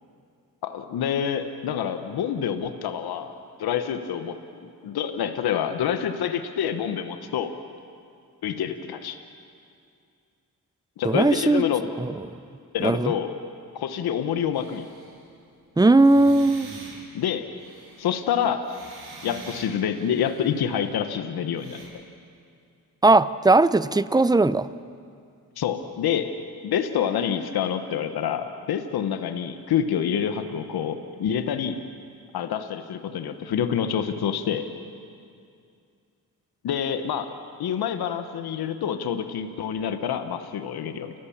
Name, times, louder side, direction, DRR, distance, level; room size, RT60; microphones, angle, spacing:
voice 1, 0.6-3.3 3.6-7.5 8.4-9.2 11.0-11.8 12.7-13.3 13.7-14.9 17.1-17.5 18.0-18.8 19.2-21.8 25.6-26.3 26.6-31.8 32.3-34.7 36.6-37.3 37.6-41.1, left 8 dB, 70° left, 8 dB, 1.3 m, -27 dB
voice 2, 11.0-11.6 12.0-12.1 12.8-13.1 15.8-16.7 23.0-24.7, right 2 dB, 10° right, 15 dB, 0.7 m, -18 dB
sound 1, 14.5-15.2 15.9-20.9 21.5-21.8, right 3 dB, 85° right, 7.6 m, -45 dB
29.5 x 14.5 x 7.2 m, 2.4 s
supercardioid pair, 60°, 39 cm